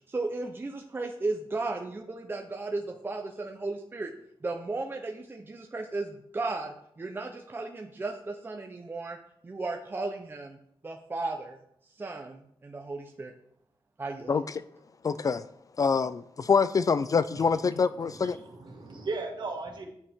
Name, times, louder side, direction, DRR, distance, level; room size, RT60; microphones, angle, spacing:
voice 1, 0.1-4.1 4.4-9.2 9.4-10.6 10.8-11.6 12.0-13.3 14.0-14.3, right 3 dB, 20° right, 0.7 m, -35 dB
voice 2, 15.0-15.4 15.8-18.4, left 5 dB, 35° left, 0.3 m, -25 dB
voice 3, 18.0-19.8, right 3 dB, 50° right, 2.0 m, -37 dB
9.4 x 8.5 x 3.6 m
wide cardioid pair, 160°, 10 cm